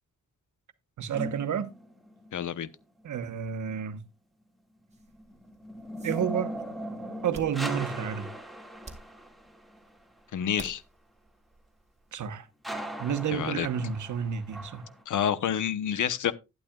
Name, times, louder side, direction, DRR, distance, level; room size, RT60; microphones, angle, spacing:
voice 1, 1.0-1.7 3.0-4.0 6.0-6.5 7.2-8.3 12.1-12.5 13.0-14.9, right 8 dB, 80° right, 1.1 m, -30 dB
sound 1, 1.1-2.4 4.9-9.8 12.6-15.0, right 1 dB, ahead, 2.0 m, -39 dB
voice 2, 2.3-2.7 10.3-10.8 13.3-13.7 15.1-16.3, left 9 dB, 80° left, 0.9 m, -28 dB
sound 2, 4.9-12.2, right 3 dB, 20° right, 2.1 m, -53 dB
11.5 x 11.5 x 2.4 m
wide cardioid pair, 135°, 30 cm